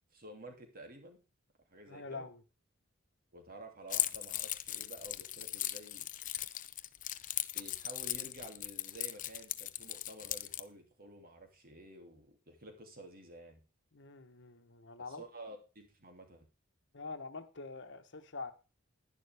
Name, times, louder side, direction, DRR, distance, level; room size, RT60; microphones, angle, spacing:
voice 1, 0.1-1.2 1.7-2.3 3.3-6.1 7.5-13.6 15.1-16.5, right 1 dB, 45° right, 2.8 m, -51 dB
voice 2, 1.9-2.4 13.9-15.2 16.9-18.5, left 4 dB, 60° left, 1.2 m, -45 dB
Keys jangling, 3.9-10.6, left 13 dB, 40° left, 0.6 m, -38 dB
11.0 x 10.5 x 3.5 m
head